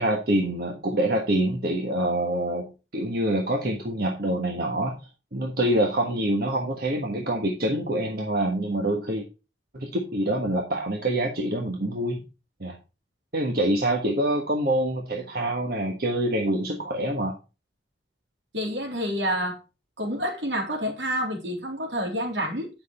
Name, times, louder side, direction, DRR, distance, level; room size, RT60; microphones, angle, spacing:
voice 1, 0.0-5.0 5.3-9.2 9.7-12.2 12.6-12.8 13.3-17.4, right 1 dB, 55° right, 1.4 m, -26 dB
voice 2, 18.5-19.6 20.0-22.7, equal, 80° right, 3.6 m, -28 dB
9.3 x 6.0 x 4.3 m
head